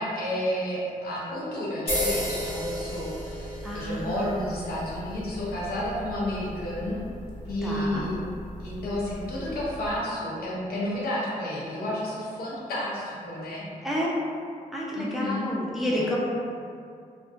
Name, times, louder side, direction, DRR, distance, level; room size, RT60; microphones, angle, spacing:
voice 1, 0.0-7.0 7.5-8.3 8.6-13.6 15.0-15.5 15.8-16.1, left 1 dB, 90° left, -6 dB, 0.6 m, -31 dB
sound 1, 1.9-10.0, equal, 40° left, 0.8 m, -35 dB
voice 2, 3.6-4.2 7.6-8.0 13.8-14.1 14.7-16.2, left 1 dB, ahead, -6 dB, 0.4 m, -29 dB
2.5 x 2.1 x 2.4 m, 2.3 s
wide cardioid pair, 135°, 15 cm